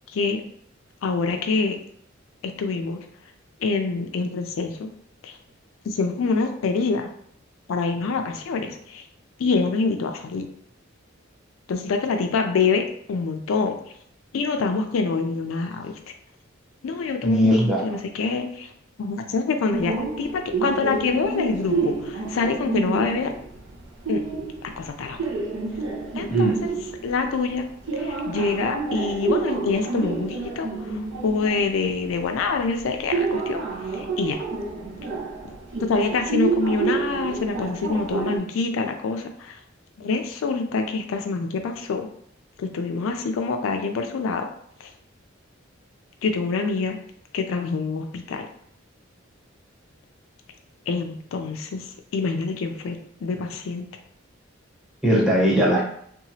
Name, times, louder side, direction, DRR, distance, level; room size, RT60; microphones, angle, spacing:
voice 1, 1.0-1.8 2.4-3.0 3.6-4.9 5.2-5.3 5.9-7.1 7.7-9.0 9.4-10.5 11.7-13.7 14.3-16.0 16.8-18.7 19.0-23.3 24.1-24.2 24.8-25.2 26.1-26.7 27.0-27.7 27.9-33.6 33.9-34.4 35.5-39.6 40.0-42.1 42.6-44.5 44.8-44.9 46.2-47.0 47.3-48.5 50.9-51.9 52.1-53.9, left 4 dB, 85° left, 5 dB, 0.4 m, -26 dB
voice 2, 17.2-18.0 26.3-26.6 55.0-55.8, equal, 5° right, -4 dB, 0.6 m, -19 dB
sound 1, 19.7-38.4, right 4 dB, 65° right, 0.6 m, -28 dB
2.9 x 2.3 x 2.7 m, 0.66 s
head